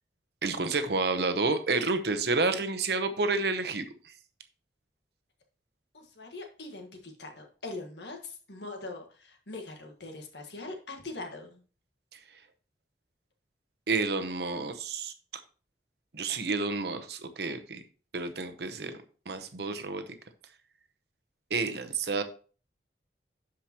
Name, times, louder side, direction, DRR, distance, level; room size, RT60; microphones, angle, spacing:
voice 1, 0.4-3.9 13.9-15.1 16.1-17.8 18.1-19.0 19.3-20.0 21.5-22.2, right 3 dB, 65° right, 8 dB, 0.9 m, -29 dB
voice 2, 5.9-11.6, left 2 dB, 75° left, 3 dB, 1.5 m, -42 dB
12.0 x 5.0 x 3.0 m, 0.39 s
head